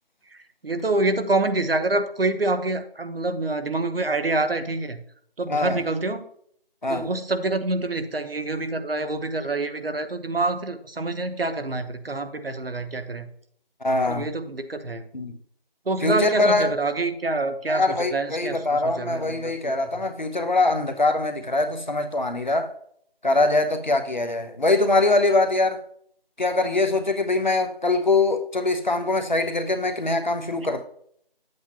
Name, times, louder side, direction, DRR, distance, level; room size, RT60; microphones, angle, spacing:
voice 1, 0.3-5.0 5.4-6.3 6.9-13.3 14.1-15.0 15.8-20.1, right 2 dB, 75° right, 1.0 m, -26 dB
voice 2, 13.8-14.3 15.1-15.4 16.0-16.8 17.7-22.7 23.2-25.8 26.4-30.8, left 2 dB, 50° left, 0.9 m, -23 dB
8.6 x 7.9 x 2.8 m
figure-of-eight pair, 180°, 30 cm